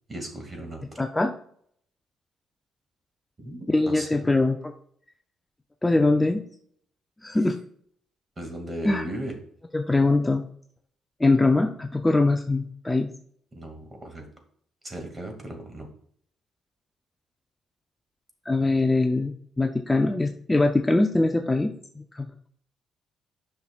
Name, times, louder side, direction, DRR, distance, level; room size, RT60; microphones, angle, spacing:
voice 1, 0.1-1.0 3.4-3.6 3.9-4.3 8.4-9.3 13.5-14.2 14.8-15.9, right 1 dB, 25° right, 4 dB, 2.1 m, -36 dB
voice 2, 1.0-1.3 3.7-4.7 5.8-6.4 7.2-7.6 8.8-9.0 9.7-10.5 11.2-13.1 18.5-22.3, left 2 dB, 15° left, 4 dB, 0.5 m, -22 dB
9.6 x 5.8 x 2.4 m, 0.62 s
cardioid pair, 90°, 0 cm